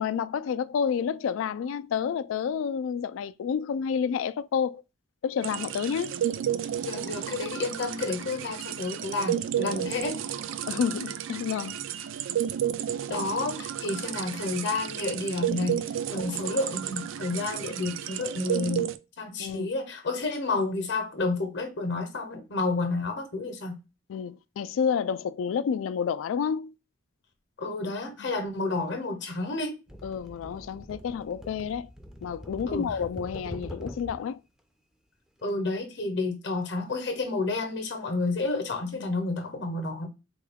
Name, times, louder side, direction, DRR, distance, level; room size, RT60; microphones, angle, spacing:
voice 1, 0.0-4.8 5.2-6.1 9.6-9.8 10.7-11.8 19.4-19.7 24.1-26.7 30.0-31.9 32.2-34.4 39.0-39.1, left 7 dB, 85° left, 0.3 m, -29 dB
sound 1, 5.4-19.0, right 10 dB, 80° right, 0.3 m, -32 dB
voice 2, 6.8-10.2 13.1-18.9 19.2-23.8 27.6-29.7 32.7-32.9 35.4-40.1, left 3 dB, 60° left, 0.7 m, -30 dB
sound 2, 29.9-34.3 35.4-35.5, equal, 5° right, 0.4 m, -43 dB
3.7 x 2.2 x 3.4 m
head